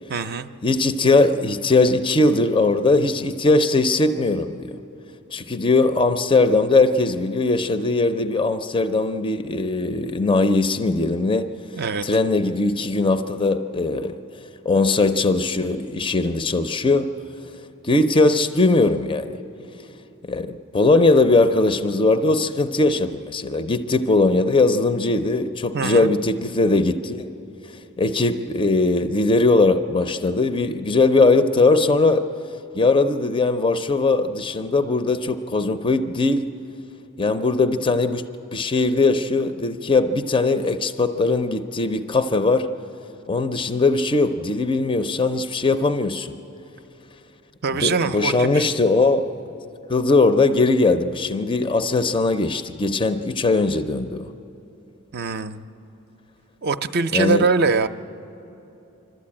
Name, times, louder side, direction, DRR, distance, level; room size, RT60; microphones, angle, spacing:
voice 1, 0.1-0.5 11.7-12.1 25.7-26.1 47.6-48.5 55.1-55.6 56.6-57.9, right 4 dB, 50° right, 9 dB, 0.5 m, -22 dB
voice 2, 0.6-4.8 5.3-17.1 17.4-17.5 17.8-19.3 20.2-27.3 28.0-32.3 32.7-36.5 37.2-38.3 38.5-42.7 43.3-46.3 47.7-49.3 49.9-54.3 57.1-57.5, left 3 dB, 25° left, 10 dB, 0.5 m, -20 dB
26.5 x 13.0 x 8.7 m, 2.9 s
head